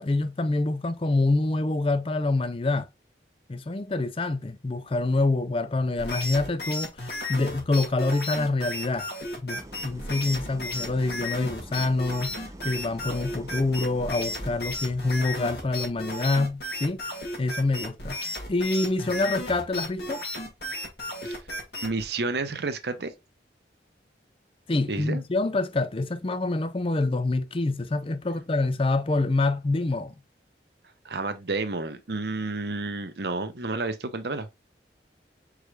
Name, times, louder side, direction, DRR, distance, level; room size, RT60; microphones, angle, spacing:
voice 1, 0.0-2.9 3.5-9.1 9.4-18.2 18.5-20.2 24.7-30.1, left 2 dB, 30° left, 0.5 m, -26 dB
sound 1, 6.0-22.1, left 1 dB, 65° left, 2.1 m, -34 dB
Idling, 9.5-15.6, right 1 dB, 15° right, 0.6 m, -44 dB
voice 2, 21.8-23.1 24.9-25.2 31.0-34.5, right 3 dB, 65° right, 0.8 m, -30 dB
4.9 x 4.7 x 2.3 m
head